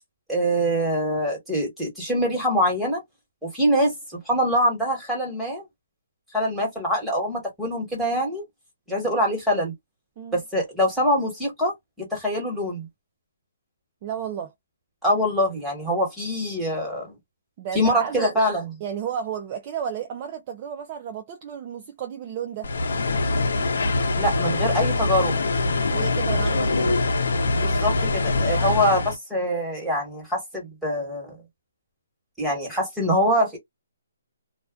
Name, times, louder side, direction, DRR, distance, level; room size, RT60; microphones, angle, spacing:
voice 1, 0.3-3.0 3.4-5.7 6.3-8.4 8.9-9.7 10.3-12.9 15.0-17.2 17.7-18.7 24.2-25.4 27.6-31.4 32.4-33.6, equal, ahead, 1.3 m, -24 dB
voice 2, 14.0-14.5 17.6-18.5 18.8-22.7 25.9-27.0, right 8 dB, 30° right, 0.4 m, -32 dB
sound 1, 22.6-29.2, left 2 dB, 70° left, 0.6 m, -23 dB
2.3 x 2.2 x 2.4 m
hypercardioid pair, 160°, 0 cm